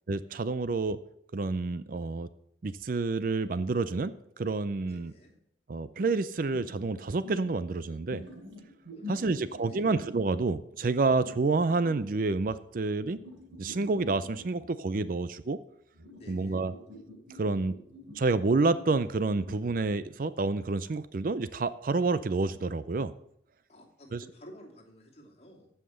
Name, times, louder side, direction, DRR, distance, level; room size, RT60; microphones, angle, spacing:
voice 1, 0.1-1.0 1.3-2.3 2.6-5.1 5.7-8.2 9.1-13.2 13.6-15.6 16.3-16.7 17.4-17.7 18.1-23.1 24.1-24.2, right 3 dB, 45° right, 14 dB, 0.4 m, -29 dB
voice 2, 4.8-5.4 8.9-9.8 16.2-16.6 23.7-25.7, equal, 35° left, -1 dB, 2.6 m, -52 dB
sound 1, 6.0-6.1 6.5-7.5 8.1-10.2 11.1-12.2 13.1-14.9 15.9-19.9, left 1 dB, 90° right, 3.0 m, -47 dB
14.5 x 5.7 x 6.3 m, 0.74 s
head